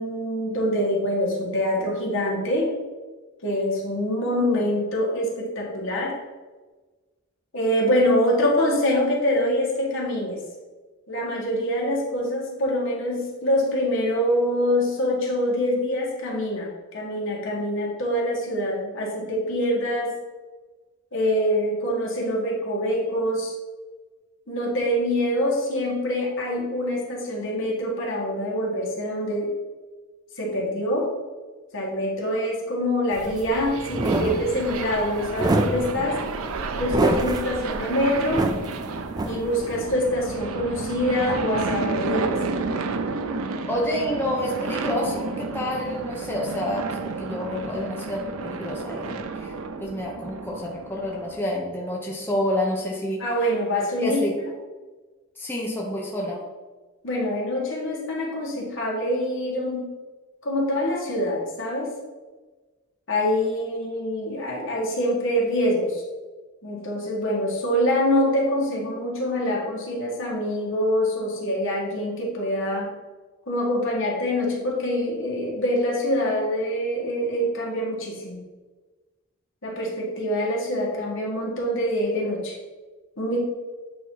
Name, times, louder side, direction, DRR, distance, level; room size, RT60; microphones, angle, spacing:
voice 1, 0.0-2.7 3.4-6.2 7.5-10.4 11.1-20.1 21.1-23.6 24.5-29.6 30.4-31.1 31.7-36.2 36.8-38.5 39.3-42.4 53.2-54.2 57.0-59.9 60.4-61.9 63.1-66.0 66.6-72.9 73.5-78.4 79.6-82.6 83.2-83.4, left 1 dB, 60° left, -3 dB, 1.7 m, -25 dB
sound 1, 33.1-39.8, right 2 dB, 20° right, 0.3 m, -27 dB
sound 2, 33.2-51.4, right 4 dB, 80° right, 0.5 m, -32 dB
voice 2, 43.7-46.9 47.2-49.5 49.8-53.2 54.0-54.3 55.4-56.4, left 1 dB, 10° left, -3 dB, 0.7 m, -28 dB
8.3 x 2.8 x 4.6 m, 1.3 s
head